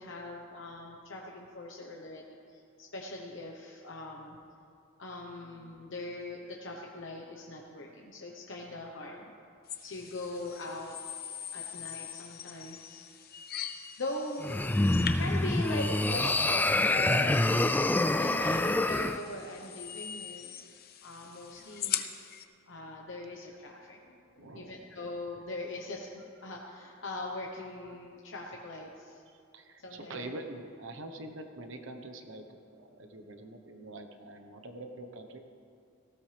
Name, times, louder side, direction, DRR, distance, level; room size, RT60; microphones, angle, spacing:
voice 1, 0.0-4.4 5.0-9.3 9.8-11.0 11.5-13.0 14.0-14.6 15.2-17.5 18.2-20.7 21.0-22.0 22.7-29.2 29.8-30.3, left 2 dB, 60° left, -1 dB, 1.1 m, -41 dB
sound 1, 9.7-22.4, left 9 dB, 45° left, 0.7 m, -42 dB
sound 2, 14.4-19.2, left 2 dB, 10° left, 0.3 m, -26 dB
voice 2, 19.2-19.5 21.6-21.7 24.4-24.8 29.3-32.4 32.7-35.4, right 2 dB, 65° right, 6 dB, 1.2 m, -45 dB
18.0 x 16.0 x 3.5 m, 2.5 s
head